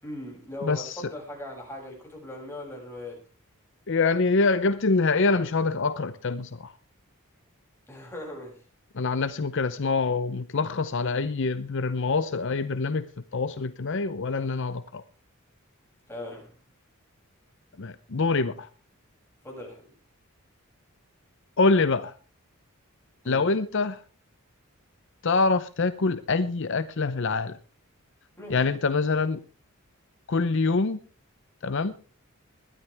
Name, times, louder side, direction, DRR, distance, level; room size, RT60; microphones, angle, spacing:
voice 1, 0.0-3.1 7.9-8.5 16.1-16.5 19.4-19.9 23.2-23.5 28.4-28.6, left 1 dB, 10° left, -1 dB, 7.0 m, -39 dB
voice 2, 0.6-1.0 3.9-6.7 8.9-13.1 13.3-15.0 17.8-18.7 21.6-22.1 23.3-24.0 25.2-27.6 28.5-29.4 30.3-31.0 31.6-31.9, left 3 dB, 60° left, 12 dB, 0.7 m, -25 dB
21.0 x 13.0 x 3.5 m, 0.36 s
head